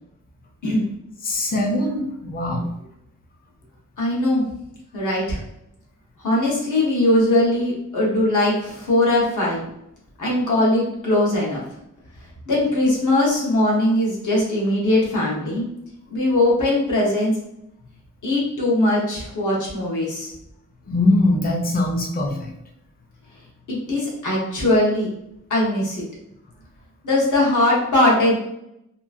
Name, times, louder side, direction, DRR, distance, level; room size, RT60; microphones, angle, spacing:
voice 1, 1.2-2.7 20.9-22.5, left 1 dB, 30° left, 1 dB, 0.5 m, -21 dB
voice 2, 4.0-4.4 4.9-5.4 6.2-9.6 10.2-11.6 12.5-15.7 16.1-17.3 18.2-20.3 23.7-25.1 25.5-26.0 27.0-28.4, left 1 dB, 75° left, -4 dB, 1.1 m, -20 dB
2.9 x 2.4 x 2.4 m, 0.79 s
wide cardioid pair, 150°, 31 cm